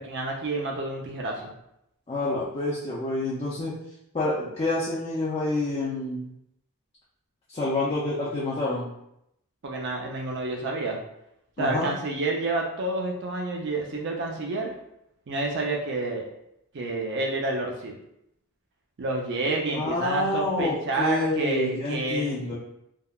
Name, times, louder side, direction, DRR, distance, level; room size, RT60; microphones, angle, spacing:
voice 1, 0.0-1.5 9.6-11.0 11.6-14.7 15.3-16.3 16.7-17.9 19.0-22.3, right 2 dB, 50° right, 0 dB, 0.4 m, -29 dB
voice 2, 2.1-3.7 4.1-6.3 7.5-8.9 11.6-11.9 19.7-22.5, left 2 dB, 25° left, -7 dB, 0.4 m, -28 dB
3.4 x 2.2 x 2.3 m, 0.79 s
head